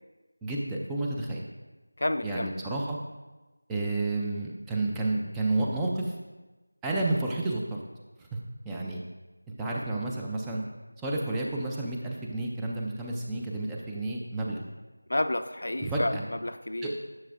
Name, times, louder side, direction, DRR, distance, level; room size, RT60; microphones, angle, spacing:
voice 1, 0.4-1.4 2.2-3.0 3.7-6.1 6.8-7.6 8.7-9.0 9.6-10.6 11.0-14.6 15.8-16.2 16.8-16.9, right 2 dB, 5° right, -3 dB, 0.4 m, -30 dB
voice 2, 2.0-2.5 15.1-16.1 16.4-16.9, left 1 dB, 55° left, 9 dB, 0.5 m, -30 dB
10.5 x 6.8 x 2.5 m, 1.1 s
figure-of-eight pair, 170°, 0 cm